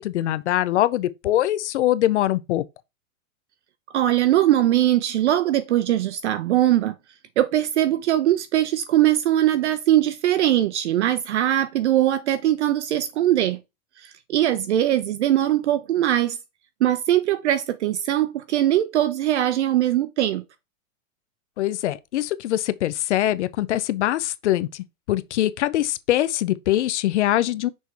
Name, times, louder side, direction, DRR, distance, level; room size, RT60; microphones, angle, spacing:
voice 1, 0.0-2.6 21.6-27.7, left 13 dB, 55° left, 0.6 m, -23 dB
voice 2, 3.9-6.9 7.4-13.6 14.0-16.4 16.8-20.4, right 12 dB, 55° right, 0.6 m, -21 dB
6.2 x 3.4 x 4.5 m
supercardioid pair, 175°, 42 cm